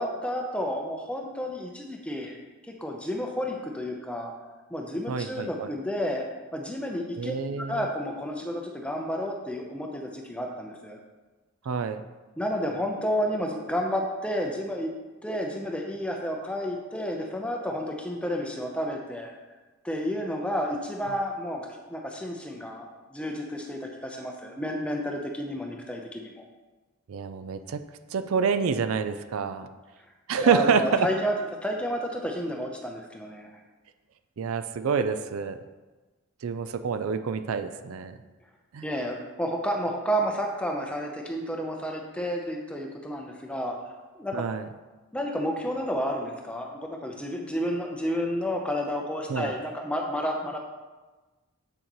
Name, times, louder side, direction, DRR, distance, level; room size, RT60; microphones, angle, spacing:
voice 1, 0.0-2.4 2.8-4.3 4.7-6.3 6.5-7.3 7.7-11.0 12.4-14.9 15.2-19.3 19.8-26.5 30.4-31.3 31.6-33.5 38.8-43.7 44.1-44.5 45.1-50.6, equal, 5° left, 1 dB, 0.6 m, -31 dB
voice 2, 5.1-5.7 7.2-7.8 11.7-12.0 27.1-27.8 28.1-29.7 30.3-31.1 34.4-35.6 36.4-38.2 38.7-38.9 44.3-44.7 49.3-49.5, right 6 dB, 75° right, 10 dB, 0.4 m, -27 dB
8.0 x 6.3 x 3.0 m, 1.2 s
head